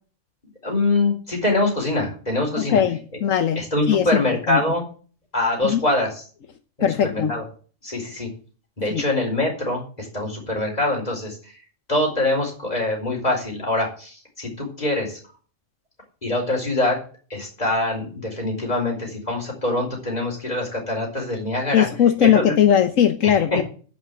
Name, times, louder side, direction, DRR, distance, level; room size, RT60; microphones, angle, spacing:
voice 1, 0.6-2.8 3.6-4.8 5.3-6.2 7.0-7.4 7.8-8.3 8.8-11.6 11.9-15.2 16.2-17.0 17.3-21.9 22.2-22.5 23.2-23.6, left 2 dB, 30° left, 0 dB, 4.5 m, -24 dB
voice 2, 2.6-4.2 4.5-4.6 5.6-5.8 6.8-7.3 8.9-9.0 21.7-23.6, left 9 dB, 80° left, 7 dB, 1.3 m, -19 dB
11.0 x 5.9 x 8.9 m, 0.41 s
omnidirectional pair, 1.3 m